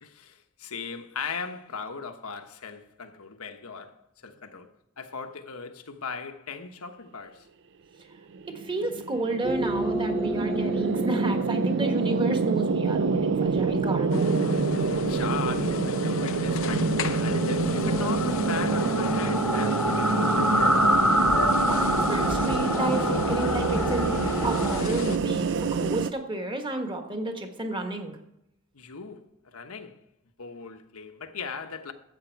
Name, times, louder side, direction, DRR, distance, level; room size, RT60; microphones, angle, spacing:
voice 1, 0.0-4.7 5.0-7.5 14.7-20.5 28.7-30.0 30.4-31.9, left 5 dB, 85° left, 1.2 m, -38 dB
sound 1, 8.3-26.1, right 4 dB, 60° right, 0.5 m, -27 dB
voice 2, 8.5-14.3 21.6-28.2, right 2 dB, 25° right, 1.5 m, -31 dB
sound 2, 9.4-24.8, equal, 5° left, 0.5 m, -29 dB
sound 3, 14.1-25.2, left 4 dB, 65° left, 0.6 m, -32 dB
13.5 x 8.2 x 4.7 m
head